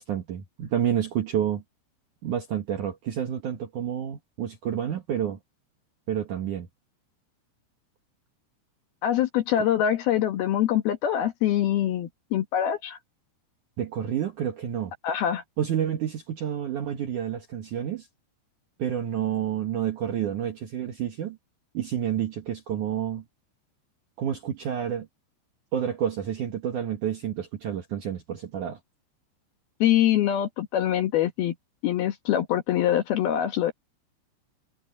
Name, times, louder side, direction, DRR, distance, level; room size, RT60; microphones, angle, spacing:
voice 1, 0.0-1.6 2.2-5.4 6.1-6.7 13.8-14.9 15.6-18.1 18.8-21.4 21.7-23.2 24.2-25.1 25.7-28.8, right 9 dB, 65° right, 2.0 m, -29 dB
voice 2, 9.0-13.0 15.0-15.4 29.8-31.5 31.8-33.7, left 11 dB, 65° left, 2.8 m, -24 dB
omnidirectional pair, 5.4 m